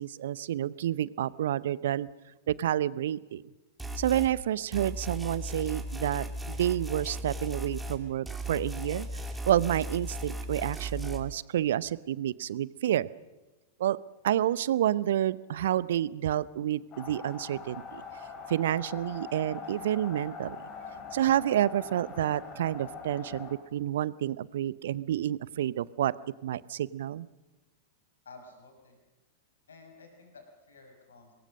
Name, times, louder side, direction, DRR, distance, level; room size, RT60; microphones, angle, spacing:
voice 1, 0.0-2.1 2.5-3.4 4.0-9.1 9.5-13.1 13.8-14.0 14.2-18.0 18.5-20.6 21.1-26.1 26.4-27.3, right 11 dB, 60° right, 20 dB, 0.7 m, -29 dB
sound 1, 3.8-4.3 4.7-11.2, equal, 5° right, 2.7 m, -37 dB
sound 2, 16.9-23.5, left 5 dB, 35° left, 5.4 m, -43 dB
voice 2, 28.3-29.0 29.7-31.3, left 3 dB, 75° left, 5 dB, 5.5 m, -52 dB
26.0 x 21.5 x 6.5 m, 1.1 s
figure-of-eight pair, 95°, 0 cm